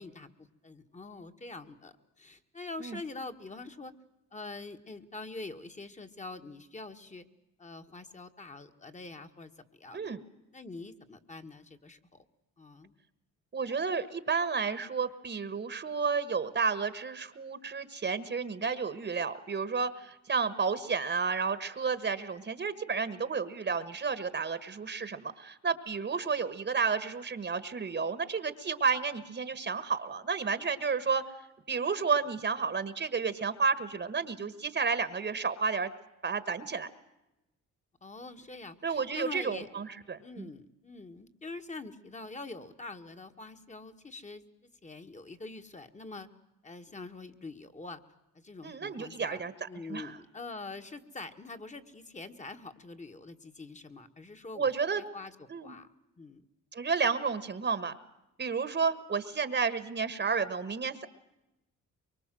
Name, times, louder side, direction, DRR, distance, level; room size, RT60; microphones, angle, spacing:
voice 1, 0.0-3.9 4.3-7.3 7.6-10.1 10.5-12.3 12.6-12.9 38.0-39.7 40.2-44.4 44.8-46.3 46.6-48.0 48.4-49.4 49.7-55.4 55.6-55.9 56.2-56.4, left 3 dB, 25° left, 7 dB, 1.8 m, -45 dB
voice 2, 13.5-31.2 31.7-35.9 36.2-36.9 38.8-40.5 48.6-50.1 54.6-55.0 55.5-55.7 56.7-57.9 58.4-61.1, right 5 dB, 35° right, 13 dB, 1.5 m, -31 dB
24.0 x 23.5 x 7.7 m, 0.92 s
cardioid pair, 90°, 30 cm